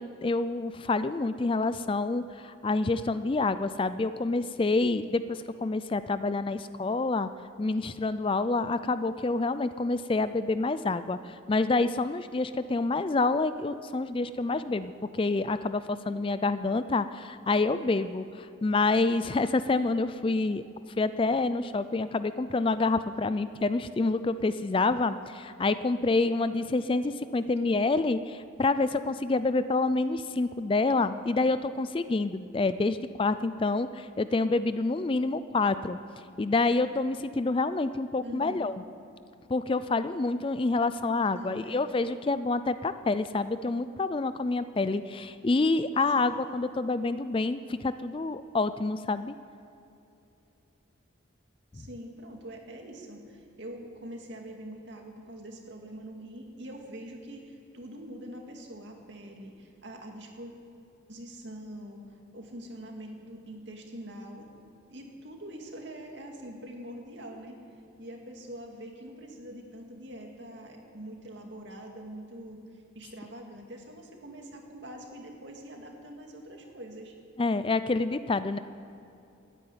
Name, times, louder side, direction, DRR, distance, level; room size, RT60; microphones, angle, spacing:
voice 1, 0.0-7.3 7.6-20.6 21.0-36.0 36.4-38.8 39.5-49.3 77.4-78.6, left 3 dB, 25° left, 13 dB, 0.3 m, -27 dB
voice 2, 38.2-38.7 41.3-41.8 46.3-46.4 51.7-60.5 61.1-64.5 64.9-67.6 68.0-77.1, right 1 dB, 60° right, 2 dB, 2.2 m, -44 dB
14.5 x 9.7 x 9.3 m, 2.7 s
head